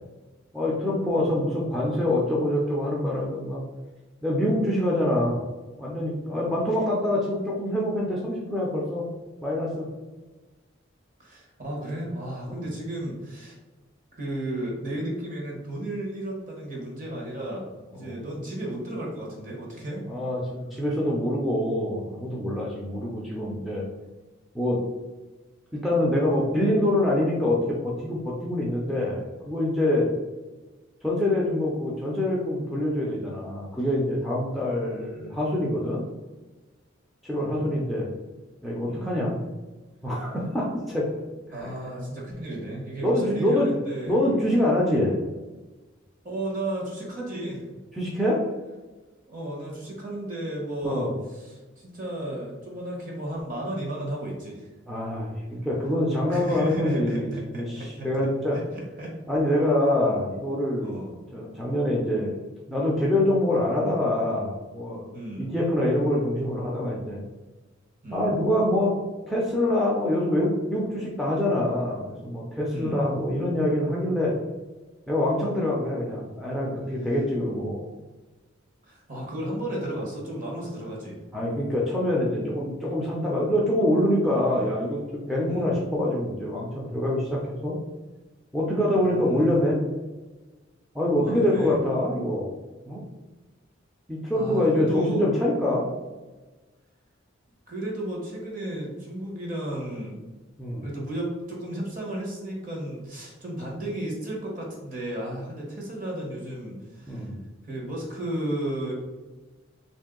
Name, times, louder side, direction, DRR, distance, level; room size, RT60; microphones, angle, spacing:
voice 1, 0.5-3.7 4.2-5.4 5.8-9.0 9.4-9.9 12.5-12.6 17.9-18.1 20.1-23.8 24.5-24.8 25.7-30.1 31.0-36.0 37.2-38.1 38.6-39.4 40.0-41.1 41.5-41.7 43.0-43.7 44.1-45.2 47.9-48.4 50.8-51.1 54.9-58.6 59.3-60.9 61.3-62.3 62.7-65.0 65.4-67.2 68.1-68.9 69.3-74.3 75.1-77.9 81.3-87.8 88.5-89.8 90.9-92.5 92.9-93.0 94.1-95.9 100.6-100.9 107.1-107.4, left 1 dB, ahead, -5 dB, 0.4 m, -25 dB
voice 2, 11.2-13.5 14.2-20.1 37.4-37.9 38.9-39.1 41.5-44.2 46.2-47.6 49.3-54.7 56.3-58.3 58.5-59.1 60.8-61.1 65.1-65.5 68.0-68.3 72.7-73.0 78.8-81.2 84.5-84.7 85.5-85.7 88.8-89.5 91.2-91.8 94.3-95.3 97.7-100.1 100.8-107.3 107.6-108.9, right 1 dB, 40° right, -2 dB, 1.1 m, -33 dB
3.3 x 2.7 x 3.7 m, 1.2 s
head